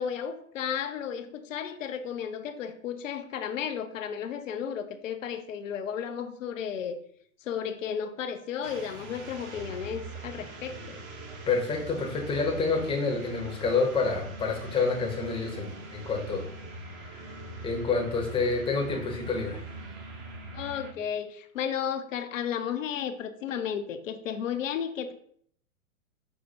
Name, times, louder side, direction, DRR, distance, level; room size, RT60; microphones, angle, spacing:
voice 1, 0.0-7.0 7.4-11.0 20.5-25.1, left 8 dB, 60° left, 8 dB, 0.6 m, -33 dB
sound 1, 8.6-20.9, right 2 dB, 25° right, 0.7 m, -42 dB
voice 2, 11.5-16.4 17.1-17.2 17.6-19.6, left 4 dB, 10° left, 1 dB, 0.7 m, -28 dB
5.5 x 2.1 x 4.2 m, 0.63 s
figure-of-eight pair, 110°, 43 cm